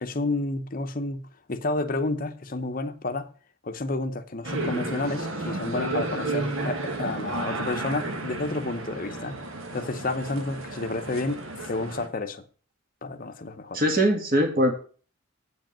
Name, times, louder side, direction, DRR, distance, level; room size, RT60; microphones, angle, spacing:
voice 1, 0.0-3.3 3.6-9.4 9.7-12.4 13.0-13.8, left 2 dB, 40° left, 0.8 m, -30 dB
sound 1, 4.4-12.1, right 2 dB, 65° right, 1.2 m, -32 dB
voice 2, 13.7-14.7, equal, 40° right, 1.8 m, -21 dB
8.2 x 5.1 x 7.4 m
head